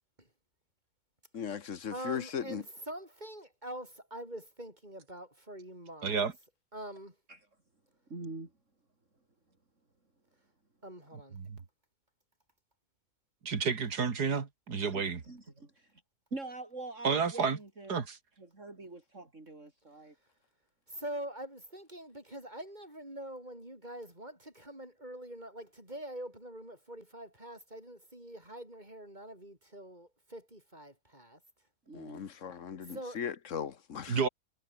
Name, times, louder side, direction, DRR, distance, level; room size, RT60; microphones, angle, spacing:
voice 1, 1.3-2.6 31.9-34.2, left 7 dB, 55° left, 1.6 m, -38 dB
voice 2, 1.9-6.2 6.7-7.1 10.8-11.4 20.9-31.4 32.9-33.2, right 1 dB, 25° right, 8.2 m, -44 dB
voice 3, 6.0-6.3 11.4-11.6 13.4-15.2 17.0-17.6 17.9-18.2 34.1-34.3, right 5 dB, 85° right, 2.8 m, -30 dB
voice 4, 8.1-8.5 14.9-15.9 16.3-17.9 18.4-20.1 31.9-32.3, right 2 dB, 50° right, 4.8 m, -44 dB
omnidirectional pair, 1.7 m